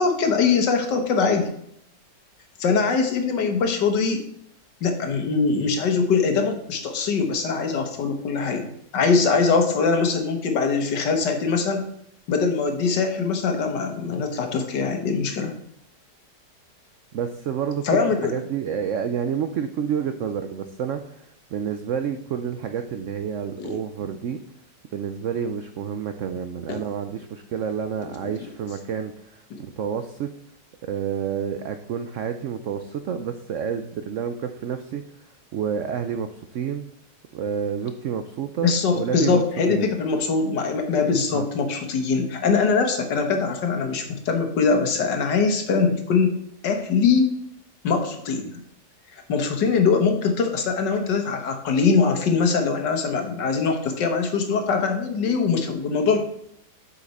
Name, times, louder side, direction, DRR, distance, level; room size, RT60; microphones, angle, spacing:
voice 1, 0.0-1.5 2.6-4.2 4.8-8.7 8.9-11.9 12.3-15.5 17.8-18.4 23.6-23.8 26.7-26.8 29.5-29.6 38.6-46.4 46.6-47.3 47.8-48.5 49.1-56.2, left 5 dB, 75° left, 5 dB, 1.8 m, -22 dB
voice 2, 17.1-21.3 21.5-24.4 24.9-30.3 30.8-35.0 35.5-36.8 37.3-39.4 39.7-39.9 41.3-41.4, right 7 dB, 85° right, 8 dB, 0.6 m, -29 dB
7.9 x 5.8 x 4.2 m, 0.73 s
omnidirectional pair, 1.9 m